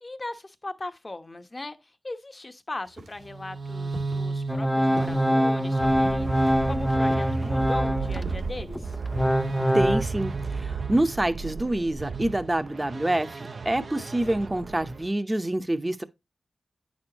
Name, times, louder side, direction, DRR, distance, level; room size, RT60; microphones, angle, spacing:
voice 1, 0.0-9.0, left 2 dB, 30° left, 1.0 m, -39 dB
sound 1, 2.8-9.9, right 1 dB, 90° right, 2.4 m, -46 dB
sound 2, 3.2-15.1, right 4 dB, 60° right, 0.5 m, -33 dB
Organ, 4.5-8.3 8.7-10.0, equal, ahead, 0.4 m, -24 dB
voice 2, 9.7-16.0, right 1 dB, 20° right, 0.8 m, -27 dB
9.5 x 6.3 x 2.9 m
wide cardioid pair, 95°, 0 cm